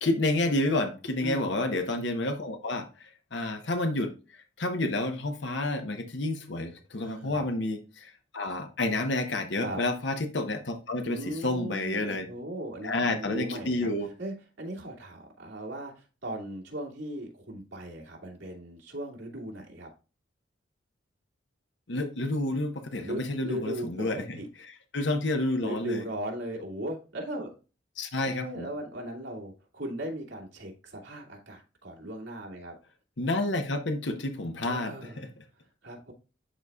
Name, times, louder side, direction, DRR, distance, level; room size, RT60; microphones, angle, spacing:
voice 1, 0.0-4.1 4.6-12.3 12.8-14.1 21.9-26.0 28.0-28.7 33.2-35.3, left 2 dB, 70° left, 6 dB, 1.0 m, -30 dB
voice 2, 1.2-1.5 7.0-7.5 9.5-9.8 11.0-13.9 14.2-19.9 23.0-24.5 25.6-27.6 28.2-32.8 34.6-35.2 35.8-36.1, right 1 dB, 80° right, -1 dB, 2.3 m, -38 dB
11.5 x 4.1 x 2.3 m, 0.33 s
head